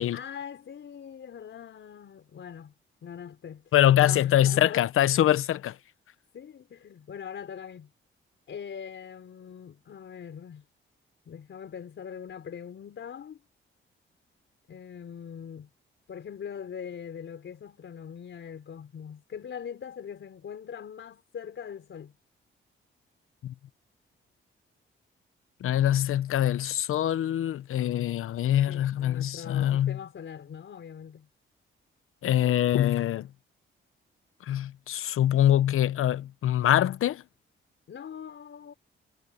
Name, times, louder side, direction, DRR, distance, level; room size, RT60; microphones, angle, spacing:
voice 1, 0.1-2.7 3.0-3.7 4.0-4.9 6.3-7.9 8.5-10.6 11.3-13.4 14.7-15.7 16.1-22.1 28.7-31.3 37.9-38.7, left 8 dB, 65° left, 4.6 m, -42 dB
voice 2, 3.7-5.7 23.4-23.5 25.6-30.0 32.2-33.3 34.5-37.2, left 12 dB, 80° left, 0.8 m, -24 dB
cardioid pair, 100°, 21 cm